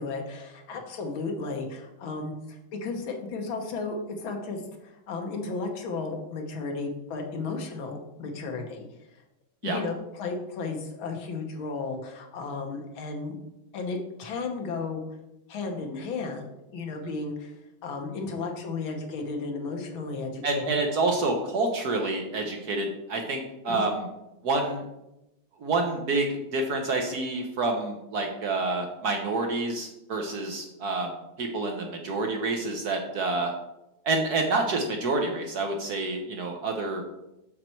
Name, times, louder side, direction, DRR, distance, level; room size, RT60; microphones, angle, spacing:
voice 1, 0.0-8.8 9.6-13.4 13.7-15.0 15.5-17.6 17.8-20.8 23.7-23.9, left 3 dB, 70° left, 3 dB, 1.8 m, -34 dB
voice 2, 20.4-24.1 24.4-24.8 25.6-33.5 34.0-37.2, right 2 dB, 60° right, 3 dB, 1.1 m, -28 dB
6.5 x 6.0 x 4.4 m, 0.90 s
omnidirectional pair, 2.3 m